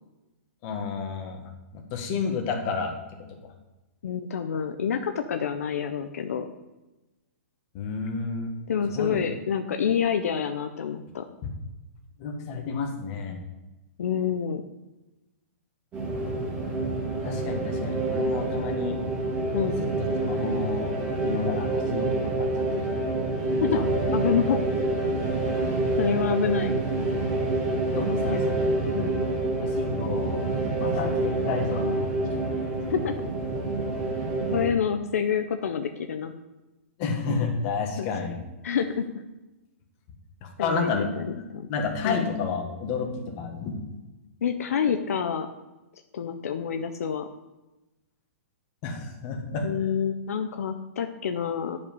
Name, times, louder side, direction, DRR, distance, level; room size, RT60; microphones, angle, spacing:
voice 1, 0.6-2.9 3.4-3.5 7.7-8.5 8.9-9.2 11.4-11.5 12.2-13.4 16.7-16.8 17.2-19.0 19.6-19.9 20.2-21.0 21.2-22.7 23.1-23.3 23.7-23.9 27.9-28.7 29.0-29.2 29.6-32.9 37.0-38.4 40.4-41.1 41.4-43.8 48.8-49.7, left 5 dB, 30° left, 3 dB, 1.6 m, -31 dB
voice 2, 4.0-6.5 8.7-11.3 14.0-14.6 19.5-19.8 23.6-23.7 24.1-24.6 26.0-26.7 28.2-28.4 28.9-29.2 32.9-33.1 34.5-36.3 38.0-38.1 38.6-39.1 40.6-41.7 42.0-42.3 44.4-45.5 46.1-47.3 49.6-51.8, left 7 dB, 75° left, 7 dB, 0.8 m, -27 dB
sound 1, 15.9-34.7, right 2 dB, 20° right, 2.4 m, -27 dB
10.5 x 5.2 x 5.4 m, 1.1 s
hypercardioid pair, 160°, 8 cm